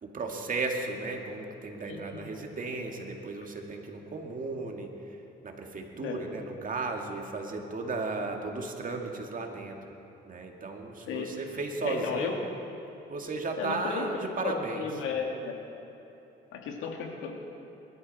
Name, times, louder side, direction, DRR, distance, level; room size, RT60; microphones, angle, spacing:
voice 1, 0.0-5.2 5.4-10.0 10.2-12.4 13.1-14.9, right 3 dB, 45° right, 2 dB, 2.0 m, -35 dB
voice 2, 1.9-2.3 6.0-6.2 11.1-11.3 11.8-12.3 13.6-14.1 14.4-15.5 16.5-17.3, left 6 dB, 85° left, 2 dB, 1.9 m, -34 dB
22.0 x 13.0 x 4.2 m, 2.9 s
cardioid pair, 90°, 20 cm